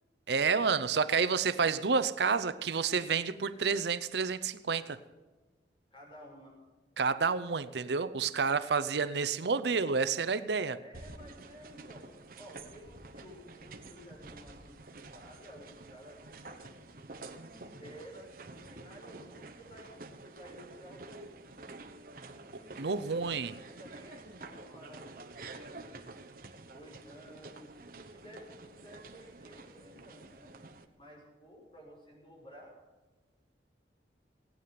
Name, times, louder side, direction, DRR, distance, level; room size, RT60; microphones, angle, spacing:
voice 1, 0.3-5.0 7.0-10.8 22.8-23.5, right 5 dB, 70° right, 13 dB, 0.6 m, -29 dB
voice 2, 5.9-6.5 10.8-12.0 12.4-16.9 17.3-21.4 22.4-23.2 23.6-26.0 26.6-30.5 31.0-32.7, equal, 30° left, -2 dB, 5.8 m, -54 dB
sound 1, 10.9-30.8, right 3 dB, 50° right, 1.1 m, -49 dB
18.5 x 9.4 x 5.8 m, 1.3 s
head